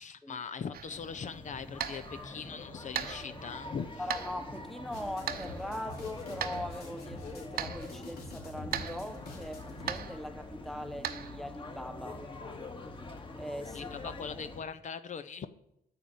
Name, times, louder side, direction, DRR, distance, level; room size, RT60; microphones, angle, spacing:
voice 1, 0.0-3.9 13.7-15.5, left 6 dB, 50° left, 0.7 m, -40 dB
sound 1, 0.7-11.4, right 9 dB, 75° right, 0.9 m, -42 dB
sound 2, 0.9-14.6, left 2 dB, 35° left, 2.1 m, -45 dB
voice 2, 4.0-12.3 13.4-14.4, left 1 dB, ahead, 1.1 m, -41 dB
sound 3, 4.9-10.0, left 3 dB, 80° left, 3.1 m, -46 dB
9.4 x 7.7 x 7.1 m
cardioid pair, 100°, 16 cm